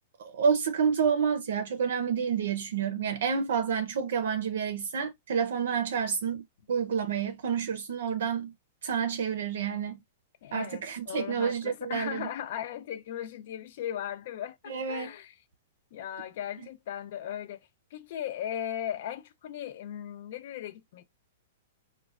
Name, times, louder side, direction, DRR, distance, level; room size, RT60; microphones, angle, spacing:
voice 1, 0.2-8.5 8.8-10.0 10.5-12.3 14.7-15.1, right 7 dB, 70° right, 0.5 m, -29 dB
voice 2, 10.4-15.3 15.9-17.6 17.9-21.0, left 10 dB, 50° left, 0.6 m, -37 dB
3.2 x 2.1 x 2.4 m
hypercardioid pair, 160°, 0 cm